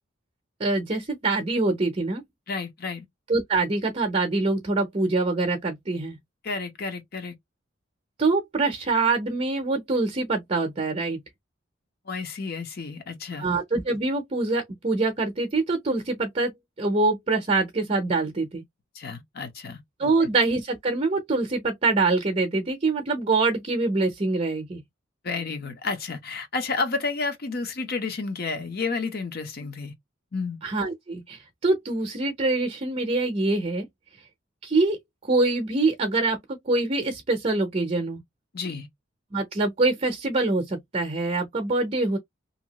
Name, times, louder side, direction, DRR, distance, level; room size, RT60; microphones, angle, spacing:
voice 1, 0.6-2.2 3.3-6.2 8.2-11.2 13.4-16.5 16.8-18.6 20.0-24.8 30.6-33.9 34.6-35.0 35.2-36.4 36.7-38.2 39.3-42.2, right 3 dB, 30° right, 0.6 m, -24 dB
voice 2, 2.5-3.1 6.4-7.3 12.1-13.5 18.9-20.1 25.2-29.9 30.3-30.6 38.5-38.9, left 4 dB, 50° left, 0.8 m, -31 dB
2.8 x 2.3 x 2.8 m
head